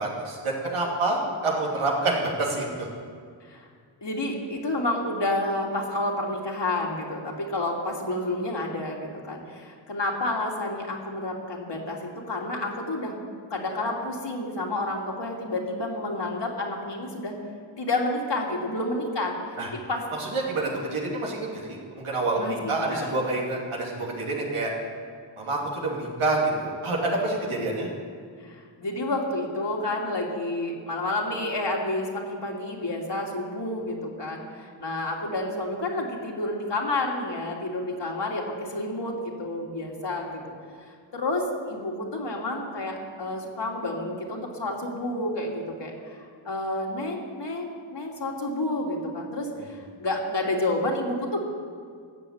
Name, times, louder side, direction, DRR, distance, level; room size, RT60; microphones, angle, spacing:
voice 1, 0.0-2.9 19.6-19.7 20.2-24.7 25.4-27.9, right 2 dB, 80° right, -2 dB, 2.8 m, -27 dB
voice 2, 4.0-13.1 13.5-17.3 17.8-20.0 22.4-23.1 28.4-40.4 41.1-51.4, left 2 dB, 55° left, -1 dB, 2.9 m, -30 dB
13.5 x 7.0 x 8.8 m, 2.1 s
cardioid pair, 40°, 49 cm